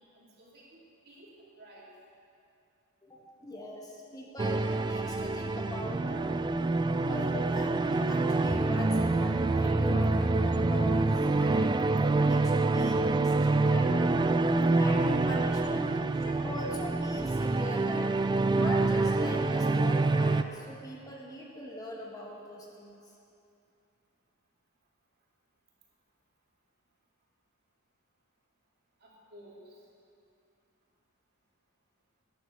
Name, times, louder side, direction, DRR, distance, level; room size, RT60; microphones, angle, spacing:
voice 1, 0.1-0.8 1.0-1.9 29.0-29.8, right 1 dB, 50° right, -4 dB, 3.0 m, -54 dB
voice 2, 3.0-6.3 7.0-14.4 14.7-15.9 16.2-18.1 18.5-23.0, equal, 20° left, -2 dB, 1.5 m, -41 dB
sound 1, 4.4-20.4, right 2 dB, 20° right, 0.3 m, -26 dB
12.5 x 10.5 x 6.9 m, 2.5 s
head